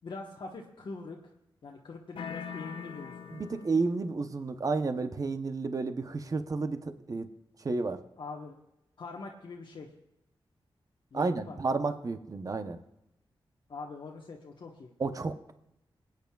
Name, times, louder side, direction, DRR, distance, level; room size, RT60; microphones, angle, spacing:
voice 1, 0.0-1.2 1.6-3.4 8.2-8.5 9.0-9.9 11.1-11.7 13.7-14.9, left 3 dB, 65° left, -1 dB, 1.1 m, -43 dB
sound 1, 2.2-4.1, left 6 dB, 90° left, 0.5 m, -42 dB
voice 2, 3.3-7.3 7.6-8.0 11.1-12.8 15.0-15.5, right 3 dB, 40° right, 8 dB, 0.8 m, -31 dB
26.0 x 9.2 x 2.4 m, 0.87 s
wide cardioid pair, 105°, 9 cm